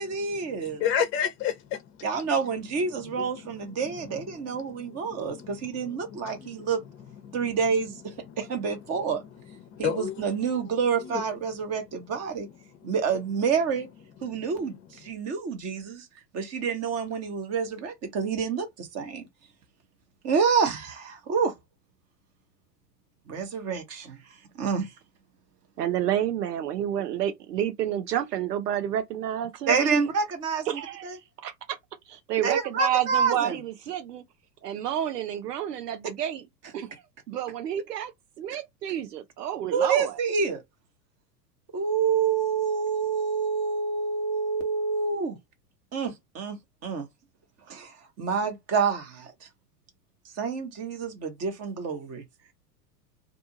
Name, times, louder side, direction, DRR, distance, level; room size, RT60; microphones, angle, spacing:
voice 1, 0.0-0.8 2.0-6.8 7.3-9.2 9.8-12.5 12.8-13.9 14.2-16.1 16.3-19.2 20.2-21.5 23.3-24.2 24.5-24.9 29.7-31.2 32.4-33.6 39.7-40.6 41.7-45.4 45.9-46.6 46.8-47.1 47.7-49.5 50.4-52.2, right 5 dB, 30° right, 1.2 m, -28 dB
voice 2, 0.8-1.9 3.0-3.2 3.7-4.0 4.3-6.7 7.2-7.6 8.3-8.4 9.7-10.2 11.1-11.2 12.8-12.9 14.4-14.5, left 8 dB, 25° left, 0.6 m, -32 dB
voice 3, 25.8-30.0 30.7-31.2 31.4-31.8 32.1-34.2 34.6-36.4 36.7-36.9 37.3-38.1 38.4-40.2, right 10 dB, 75° right, 0.9 m, -29 dB
2.6 x 2.3 x 2.8 m
hypercardioid pair, 100°, 49 cm